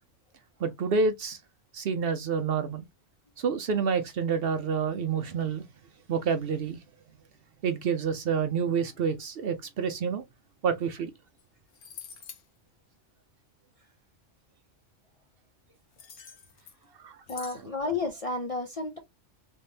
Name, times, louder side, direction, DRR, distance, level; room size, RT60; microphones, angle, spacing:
voice 1, 0.6-1.4 1.7-2.9 3.4-5.7 6.1-6.8 7.6-10.2 10.6-11.1 17.0-17.2, right 6 dB, 60° right, 0.7 m, -28 dB
sound 1, 11.4-11.5 11.7-12.4 15.9-16.8 17.3-17.6, left 7 dB, 90° left, 1.2 m, -46 dB
voice 2, 17.3-19.0, left 3 dB, 45° left, 0.5 m, -32 dB
3.5 x 3.3 x 2.7 m
omnidirectional pair, 1.3 m